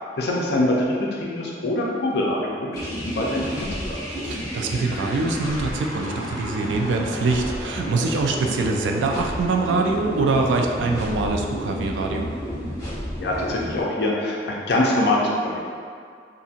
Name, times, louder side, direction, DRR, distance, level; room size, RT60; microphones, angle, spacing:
voice 1, 0.2-2.7 3.0-4.0 13.2-15.6, left 1 dB, 65° left, -2 dB, 0.5 m, -24 dB
sound 1, 2.7-13.8, equal, 20° left, 1.0 m, -31 dB
voice 2, 4.2-12.3, right 3 dB, 85° right, 2 dB, 0.3 m, -24 dB
2.7 x 2.5 x 2.4 m, 2.2 s
head